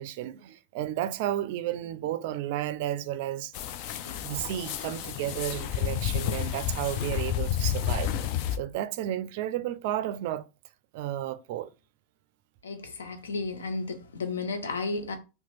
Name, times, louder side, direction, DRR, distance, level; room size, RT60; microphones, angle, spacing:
voice 1, 0.0-3.5 4.0-10.4 10.9-11.7, right 12 dB, 65° right, 0.3 m, -32 dB
sound 1, 3.5-8.6, left 10 dB, 55° left, 0.4 m, -30 dB
voice 2, 12.6-15.2, left 3 dB, 85° left, 0.7 m, -33 dB
2.9 x 2.3 x 4.1 m
hypercardioid pair, 95°, 0 cm